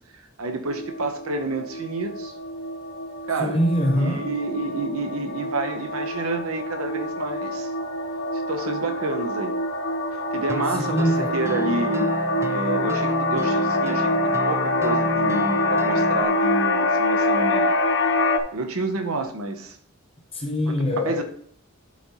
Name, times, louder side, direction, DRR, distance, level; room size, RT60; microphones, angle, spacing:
voice 1, 0.1-2.3 3.3-3.6 4.0-7.7 8.5-9.6 10.3-12.1 12.5-17.7 18.5-19.8 20.7-20.8 21.1-21.2, right 3 dB, 85° right, 0.9 m, -29 dB
sound 1, 0.7-18.4, left 2 dB, 65° left, 0.8 m, -25 dB
voice 2, 3.4-4.3 10.7-11.4 20.3-21.2, equal, 30° left, 0.8 m, -24 dB
sound 2, 10.5-16.3, right 1 dB, 15° right, 0.4 m, -31 dB
11.5 x 4.1 x 3.0 m
head